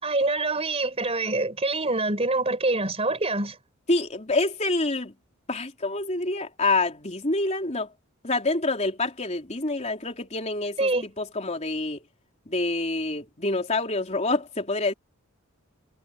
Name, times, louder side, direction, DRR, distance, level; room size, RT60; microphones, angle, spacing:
voice 1, 0.0-3.6 10.8-11.0, right 2 dB, 30° right, 4.0 m, -25 dB
voice 2, 3.9-5.1 5.5-7.9 8.2-12.0 12.5-14.9, left 2 dB, 30° left, 3.6 m, -27 dB
head